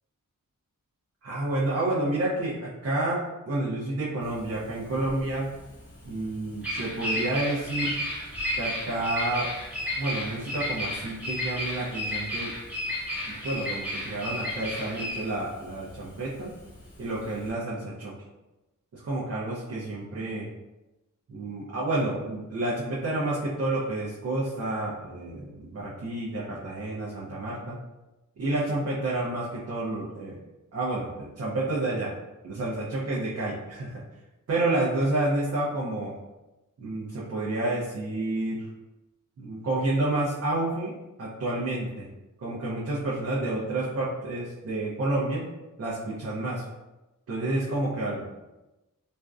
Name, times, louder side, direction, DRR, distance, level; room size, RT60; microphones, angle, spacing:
voice 1, 1.2-5.5 6.0-7.9 8.6-9.5 10.0-12.5 13.3-16.5 17.0-18.1 18.9-20.5 21.3-27.8 28.4-30.4 30.7-32.1 32.4-34.0 34.5-36.1 36.8-38.7 39.4-40.9 41.2-42.1 42.4-45.4 45.8-46.6 47.3-48.3, right 2 dB, 50° right, -7 dB, 0.6 m, -29 dB
Bird vocalization bird call bird song, 4.2-17.5, left 1 dB, 5° right, 0.6 m, -33 dB
2.5 x 2.1 x 2.3 m, 1.0 s
wide cardioid pair, 130°, 33 cm